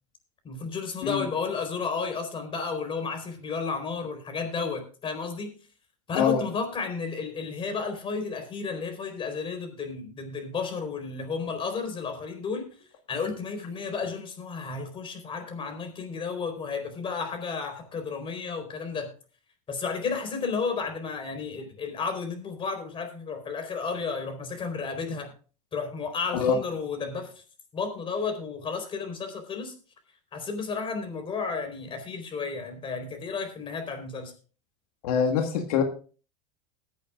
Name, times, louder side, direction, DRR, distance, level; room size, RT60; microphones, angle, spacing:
voice 1, 0.4-5.5 6.1-12.7 13.1-19.1 19.7-25.3 25.7-27.3 27.7-29.7 30.3-34.3, left 5 dB, 30° left, 6 dB, 4.2 m, -32 dB
voice 2, 35.0-35.8, left 7 dB, 85° left, 4 dB, 1.7 m, -24 dB
21.5 x 8.5 x 2.5 m, 0.37 s
supercardioid pair, 120°, 18 cm